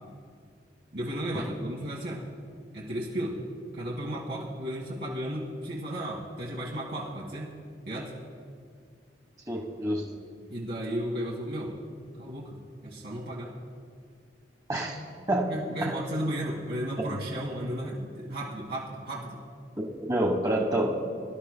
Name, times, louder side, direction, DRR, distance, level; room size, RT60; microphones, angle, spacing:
voice 1, 0.9-2.2 2.7-3.4 3.7-7.5 7.9-8.1 10.5-11.7 12.2-13.5 15.5-19.4, right 1 dB, 65° right, -5 dB, 1.7 m, -34 dB
voice 2, 9.5-10.0 14.7-15.0 15.3-15.5 15.8-15.9 19.8-20.9, right 1 dB, 20° right, -2 dB, 1.2 m, -27 dB
22.5 x 12.5 x 2.2 m, 2.2 s
head